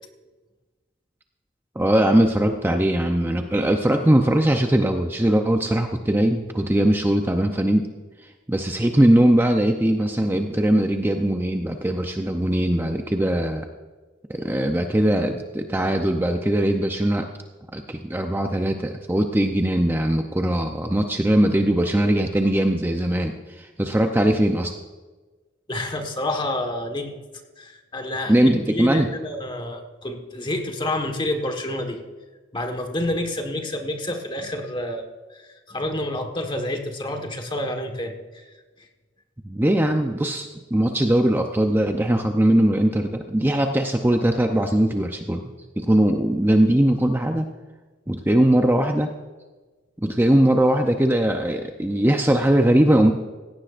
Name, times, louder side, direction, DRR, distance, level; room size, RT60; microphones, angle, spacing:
voice 1, 1.8-7.9 8.5-13.7 14.3-17.3 17.7-24.8 28.3-29.1 39.5-47.5 48.1-49.1 50.0-53.1, right 1 dB, 10° right, 4 dB, 0.6 m, -20 dB
voice 2, 25.7-27.1 27.6-32.0 32.5-38.4, left 1 dB, 25° left, 5 dB, 1.4 m, -29 dB
16.5 x 16.0 x 2.5 m, 1.3 s
head